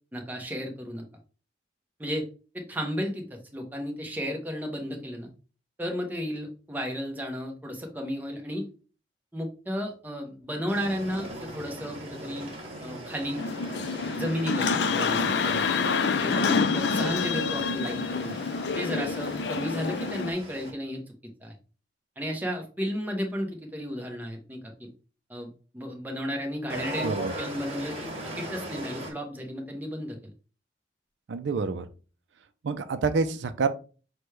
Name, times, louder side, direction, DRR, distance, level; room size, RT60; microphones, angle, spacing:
voice 1, 0.1-1.0 2.0-2.2 2.5-5.3 5.8-8.6 9.3-12.5 12.8-13.4 14.1-15.7 16.2-18.3 18.7-21.0 21.4-21.5 22.2-24.9 25.3-25.5 25.7-27.1 27.4-28.1 28.4-30.2, equal, 10° right, 2 dB, 0.8 m, -33 dB
sound 1, 10.7-20.7 26.7-29.1, right 1 dB, 35° right, 1.5 m, -39 dB
sound 2, 13.4-20.3, left 5 dB, 65° left, 0.4 m, -27 dB
voice 2, 31.3-31.9 32.6-33.7, right 4 dB, 75° right, 10 dB, 0.4 m, -27 dB
6.0 x 2.2 x 3.2 m, 0.36 s
head